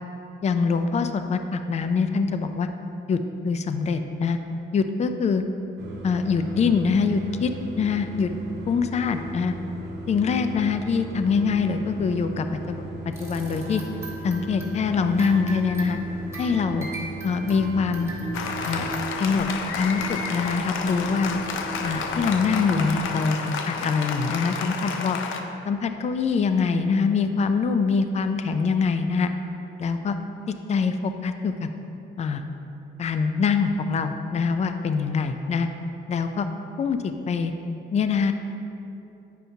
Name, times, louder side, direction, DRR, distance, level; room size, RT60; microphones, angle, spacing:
voice 1, 0.4-2.7 3.1-3.2 3.4-4.4 4.7-5.4 6.0-7.5 7.8-8.3 8.7-9.5 10.1-13.8 14.2-16.0 16.4-16.9 17.2-18.1 18.7-18.9 19.2-19.5 19.8-21.3 21.8-25.2 25.7-29.3 29.8-30.2 30.5-31.7 32.2-32.4 33.0-35.7 36.1-36.5 36.8-37.5 37.9-38.3, left 5 dB, 35° left, 8 dB, 0.4 m, -24 dB
sound 1, 5.8-23.1, right 1 dB, 60° right, 1.0 m, -37 dB
sound 2, 13.1-19.0, right 2 dB, 15° right, 1.6 m, -40 dB
Applause, 18.3-25.4, left 5 dB, 85° left, 0.6 m, -31 dB
9.1 x 5.5 x 2.8 m, 2.8 s
cardioid pair, 90°, 20 cm